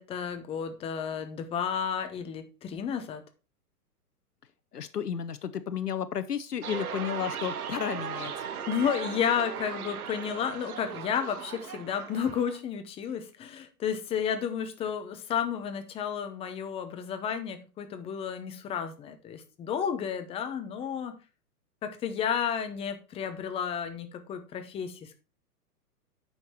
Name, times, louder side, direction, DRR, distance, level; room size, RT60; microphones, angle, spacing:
voice 1, 0.0-3.2 8.7-21.2 21.8-25.2, left 8 dB, 15° left, 8 dB, 0.7 m, -32 dB
voice 2, 4.7-8.5, left 8 dB, 80° left, 12 dB, 0.8 m, -33 dB
sound 1, 6.6-12.6, right 8 dB, 65° right, 1.1 m, -38 dB
9.1 x 5.7 x 4.3 m, 0.32 s
figure-of-eight pair, 115°, 47 cm